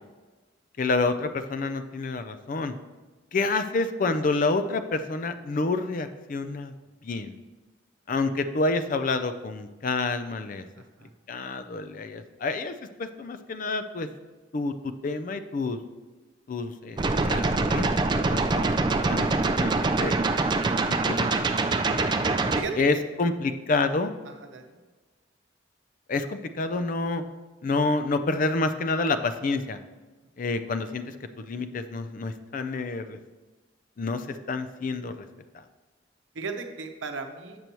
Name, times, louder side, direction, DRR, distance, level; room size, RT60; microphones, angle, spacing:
voice 1, 0.8-2.7 3.3-6.7 7.0-7.4 8.1-10.6 11.3-14.1 14.5-15.8 16.5-19.3 19.6-20.1 20.9-21.4 21.7-21.8 22.8-24.1 26.1-27.2 27.6-29.8 30.4-31.0 31.4-33.2 34.0-35.3 35.5-35.6, left 3 dB, 45° left, 10 dB, 0.4 m, -28 dB
voice 2, 10.8-11.1 22.5-23.0 24.4-24.7 36.3-37.6, right 4 dB, 85° right, 4 dB, 0.8 m, -36 dB
sound 1, 17.0-22.6, right 3 dB, 25° right, 0.3 m, -24 dB
7.7 x 6.7 x 3.0 m, 1.3 s
head